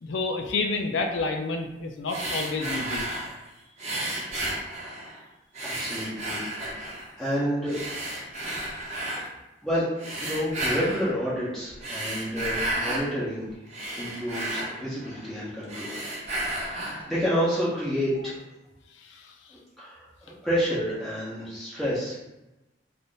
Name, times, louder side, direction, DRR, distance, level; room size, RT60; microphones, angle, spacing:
voice 1, 0.0-3.1 19.0-19.3, left 3 dB, 70° left, 4 dB, 0.4 m, -29 dB
sound 1, 2.1-3.4 3.8-5.2 5.5-7.1 7.7-9.3 10.0-11.1 11.7-13.1 13.5-15.3 15.6-17.1, right 1 dB, 35° right, 0.7 m, -32 dB
voice 2, 5.6-6.4 7.2-7.8 9.6-9.9 10.2-13.5 13.9-16.0 16.5-18.4 19.5-22.2, equal, ahead, -10 dB, 0.7 m, -29 dB
2.5 x 2.5 x 3.6 m, 1.0 s
head